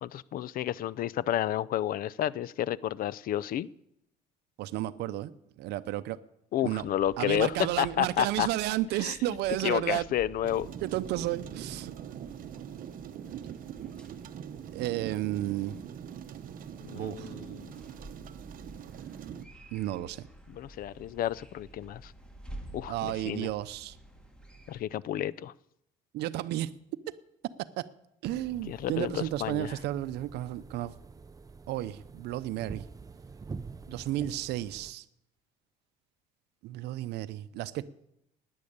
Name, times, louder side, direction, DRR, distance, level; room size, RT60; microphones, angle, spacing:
voice 1, 0.0-3.7 6.5-8.5 9.0-9.1 9.6-10.7 16.8-17.7 20.5-22.1 22.7-23.5 24.7-25.5 28.7-29.7, left 12 dB, 60° left, 22 dB, 0.5 m, -31 dB
voice 2, 4.6-5.3 5.6-6.2 6.6-6.8 7.2-10.1 10.8-12.2 14.7-15.8 16.9-17.4 19.7-20.3 22.9-24.0 26.1-26.7 27.8-27.9 28.2-30.9 31.7-32.9 33.9-35.0 36.6-37.8, right 14 dB, 80° right, 14 dB, 0.6 m, -32 dB
sound 1, 6.8-24.8, right 1 dB, 5° left, 1.9 m, -51 dB
sound 2, 10.4-19.5, right 9 dB, 55° right, 0.9 m, -43 dB
sound 3, 28.2-34.9, right 4 dB, 20° right, 0.6 m, -46 dB
12.0 x 9.7 x 8.6 m, 0.81 s
cardioid pair, 110°, 17 cm